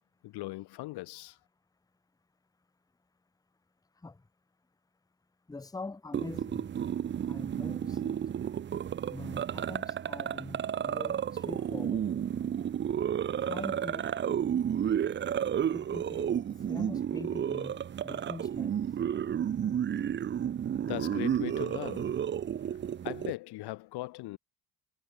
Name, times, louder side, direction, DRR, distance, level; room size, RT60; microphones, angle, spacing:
voice 1, 0.2-1.4 20.9-22.1 23.0-24.4, left 19 dB, 75° left, 1.3 m, -39 dB
voice 2, 5.5-6.7 7.2-8.3 9.1-12.1 13.5-14.4 15.7-16.4 16.7-18.8, left 3 dB, 10° left, 0.9 m, -44 dB
sound 1, 6.1-23.3, right 9 dB, 30° right, 0.5 m, -32 dB
supercardioid pair, 90°, 40 cm